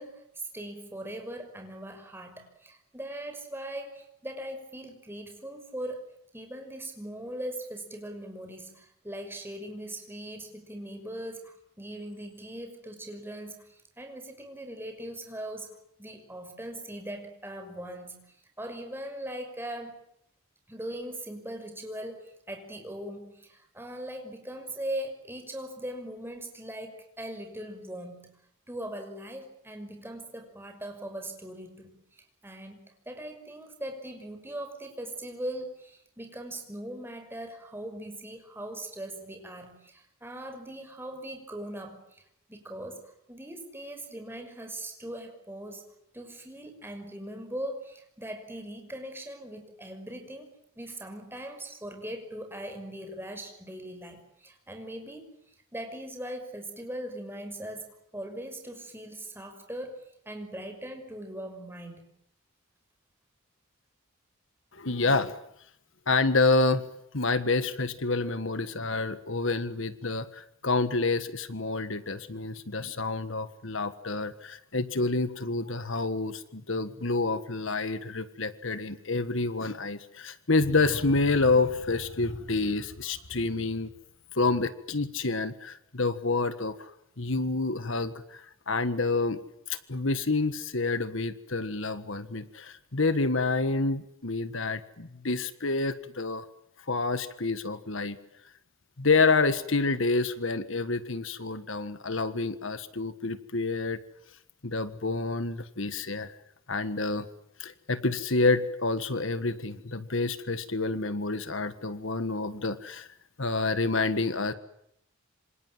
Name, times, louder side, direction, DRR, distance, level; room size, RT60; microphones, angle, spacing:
voice 1, 0.0-6.0 6.3-20.0 20.7-28.3 28.7-42.2 42.5-43.0 43.3-45.9 46.1-50.5 50.8-55.3 55.7-60.0 60.3-62.0, right 1 dB, 10° right, 5 dB, 5.8 m, -40 dB
voice 2, 64.7-65.4 66.1-66.9 67.1-83.9 84.3-86.9 87.2-89.4 89.7-96.5 96.9-98.2 99.0-104.0 104.6-106.3 106.7-107.3 107.6-113.1 113.4-114.5, left 3 dB, 65° left, 12 dB, 1.6 m, -28 dB
27.5 x 26.5 x 7.8 m, 0.76 s
head